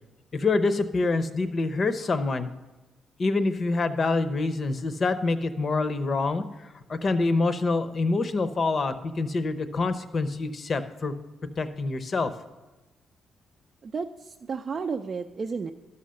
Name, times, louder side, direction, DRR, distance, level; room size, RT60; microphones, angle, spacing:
voice 1, 0.3-2.5 3.2-6.4 6.9-11.1 11.6-12.3, left 3 dB, 40° left, 12 dB, 0.8 m, -26 dB
voice 2, 13.8-15.7, right 5 dB, 40° right, 4 dB, 0.4 m, -32 dB
12.0 x 5.7 x 6.4 m, 1.1 s
cardioid pair, 90°, 0 cm